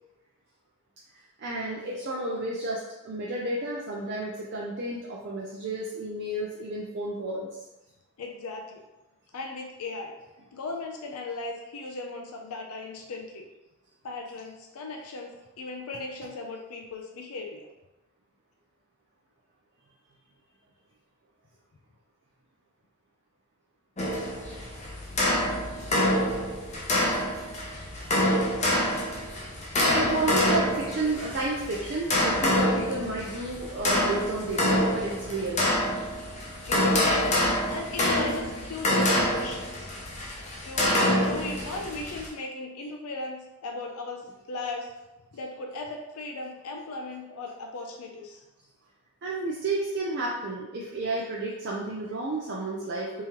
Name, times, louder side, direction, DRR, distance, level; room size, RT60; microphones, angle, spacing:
voice 1, 1.4-7.5 30.0-35.6 49.2-53.2, right 2 dB, 50° right, -4 dB, 0.4 m, -31 dB
voice 2, 8.2-8.8 9.3-10.1 10.5-13.5 14.0-17.7 36.6-37.2 37.7-39.9 40.6-44.9 45.3-48.4, left 3 dB, 85° left, 2 dB, 0.5 m, -37 dB
sound 1, 24.0-42.3, left 1 dB, 30° left, 0.6 m, -26 dB
3.6 x 2.9 x 2.9 m, 1.0 s
head